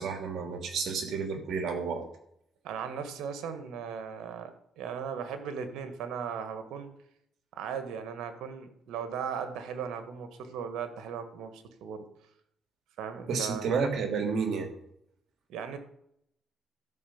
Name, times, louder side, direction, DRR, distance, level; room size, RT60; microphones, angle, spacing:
voice 1, 0.0-2.0 13.3-14.7, right 5 dB, 65° right, 5 dB, 2.7 m, -31 dB
voice 2, 2.6-6.9 7.5-12.0 13.0-13.7 15.5-15.8, right 7 dB, 85° right, 9 dB, 1.6 m, -37 dB
13.0 x 5.8 x 7.1 m, 0.74 s
cardioid pair, 90°, 0 cm